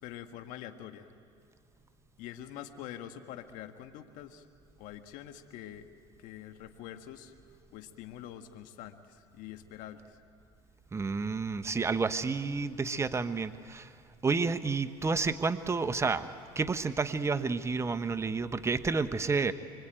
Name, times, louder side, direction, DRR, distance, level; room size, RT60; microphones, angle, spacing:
voice 1, 0.0-1.1 2.2-4.5 4.8-5.9 6.2-10.2 11.8-12.1, left 11 dB, 75° left, 7 dB, 1.5 m, -45 dB
voice 2, 10.9-13.9 14.2-16.3 16.5-19.5, right 4 dB, 20° right, 10 dB, 1.2 m, -30 dB
25.0 x 24.5 x 9.0 m, 2.2 s
supercardioid pair, 90°, 14 cm